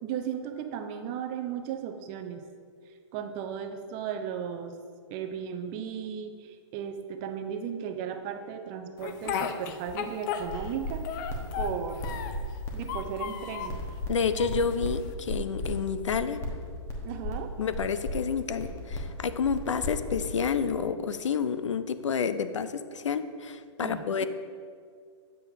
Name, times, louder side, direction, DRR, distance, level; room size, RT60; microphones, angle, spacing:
voice 1, 0.0-2.5 3.1-4.8 5.1-11.1 11.6-12.0 12.7-13.8 17.0-17.6 23.8-24.2, right 8 dB, 35° right, 7 dB, 0.6 m, -35 dB
Speech, 9.0-10.8 11.0-12.5 12.8-13.8 14.4-15.1, left 8 dB, 40° left, 0.5 m, -35 dB
sound 1, 10.4-20.8, left 1 dB, 20° left, 1.1 m, -36 dB
voice 2, 14.1-16.4 17.6-24.2, left 6 dB, 90° left, 12 dB, 0.5 m, -29 dB
7.6 x 7.3 x 2.7 m, 2.1 s
hypercardioid pair, 130°, 15 cm